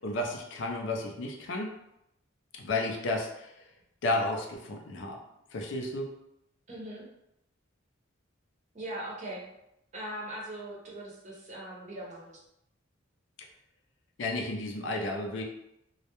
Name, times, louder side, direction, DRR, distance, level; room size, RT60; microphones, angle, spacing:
voice 1, 0.0-1.7 2.6-3.5 4.0-5.2 5.5-6.1 14.2-15.4, left 2 dB, 60° left, 2 dB, 0.4 m, -32 dB
voice 2, 6.7-7.1 8.7-9.5 9.9-12.4, right 1 dB, 35° right, -4 dB, 0.7 m, -40 dB
2.2 x 2.1 x 2.9 m, 0.82 s
head